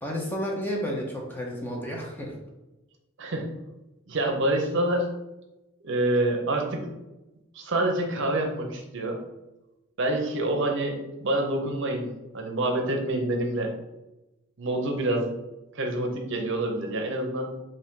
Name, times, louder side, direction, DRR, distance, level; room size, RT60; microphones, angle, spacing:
voice 1, 0.0-2.3, equal, 10° left, -2 dB, 0.6 m, -31 dB
voice 2, 4.1-5.1 5.8-6.9 7.5-9.2 10.0-13.7 14.6-15.3 15.7-17.6, right 1 dB, 60° right, 2 dB, 0.7 m, -27 dB
3.9 x 2.6 x 3.7 m, 1.0 s
head